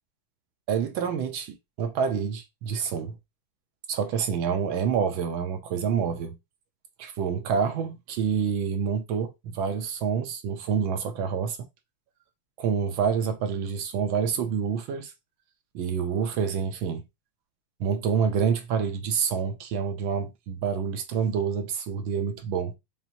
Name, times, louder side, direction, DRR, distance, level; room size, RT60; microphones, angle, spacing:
voice 1, 0.7-3.2 3.9-6.4 7.0-11.6 12.6-15.1 15.7-17.0 17.8-22.7, right 6 dB, 75° right, 1.4 m, -27 dB
5.7 x 2.6 x 2.6 m
omnidirectional pair, 2.3 m